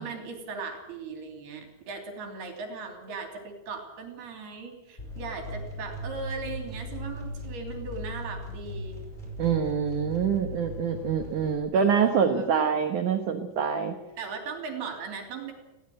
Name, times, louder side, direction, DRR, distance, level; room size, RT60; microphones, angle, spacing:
voice 1, 0.0-9.0 11.7-12.5 14.2-15.5, right 4 dB, 55° right, 3 dB, 4.8 m, -38 dB
sound 1, 5.0-11.6, equal, 10° left, 5.1 m, -38 dB
voice 2, 9.4-13.9, right 7 dB, 80° right, 6 dB, 1.8 m, -25 dB
20.0 x 17.5 x 7.8 m, 0.99 s
omnidirectional pair, 5.5 m